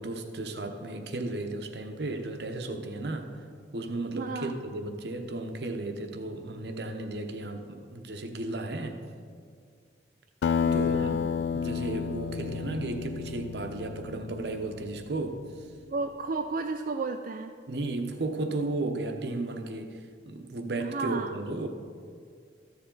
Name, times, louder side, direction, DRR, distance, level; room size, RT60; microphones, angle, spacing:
voice 1, 0.0-3.4 3.7-9.0 10.7-15.7 17.7-21.7, right 2 dB, 70° right, 6 dB, 0.8 m, -34 dB
voice 2, 4.1-4.6 10.6-11.2 15.9-17.5 20.8-21.3, right 4 dB, 50° right, 5 dB, 0.3 m, -33 dB
Acoustic guitar, 10.4-15.3, left 7 dB, 75° left, 0.3 m, -31 dB
13.0 x 7.1 x 3.8 m, 2.1 s
head